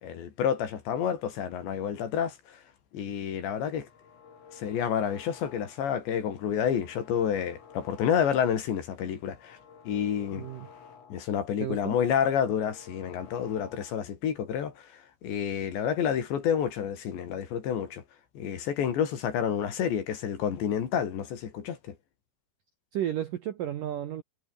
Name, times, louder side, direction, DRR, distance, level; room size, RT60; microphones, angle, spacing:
voice 1, 0.0-2.6 2.9-3.9 4.5-9.6 9.9-10.5 11.1-18.0 18.4-22.0, left 8 dB, 65° left, 5.1 m, -29 dB
sound 1, 3.6-5.9 6.3-8.7 9.0-11.4 11.7-14.1, left 6 dB, 90° left, 8.4 m, -53 dB
voice 2, 10.3-10.7 11.6-12.0 22.9-24.2, right 11 dB, 75° right, 2.0 m, -33 dB
omnidirectional pair, 5.7 m